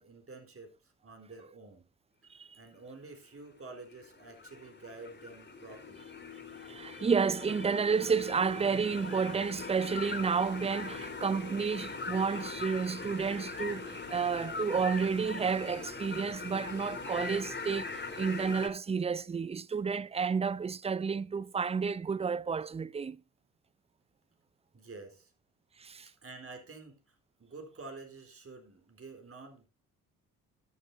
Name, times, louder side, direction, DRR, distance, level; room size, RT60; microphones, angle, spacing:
voice 1, 0.0-1.9 2.6-6.1 24.7-25.3 26.2-29.7, right 3 dB, 30° right, 4.0 m, -49 dB
sound 1, 3.7-18.7, left 4 dB, 25° left, 3.7 m, -41 dB
voice 2, 6.7-23.2 25.8-26.1, right 5 dB, 15° right, 0.5 m, -31 dB
13.5 x 12.0 x 2.7 m
figure-of-eight pair, 50°, 43 cm